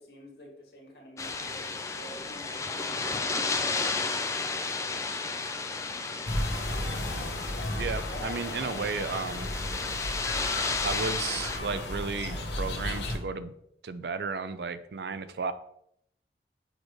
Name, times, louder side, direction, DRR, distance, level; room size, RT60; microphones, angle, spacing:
voice 1, 0.0-2.6 2.9-5.8, equal, 65° left, -1 dB, 1.9 m, -50 dB
sound 1, 1.2-11.6, left 4 dB, 15° left, 0.4 m, -33 dB
sound 2, 6.3-13.2, left 1 dB, 80° left, 1.1 m, -34 dB
voice 2, 7.8-9.5 10.8-13.5 13.8-15.5, right 4 dB, 65° right, 12 dB, 0.4 m, -33 dB
6.4 x 4.8 x 3.1 m, 0.73 s
head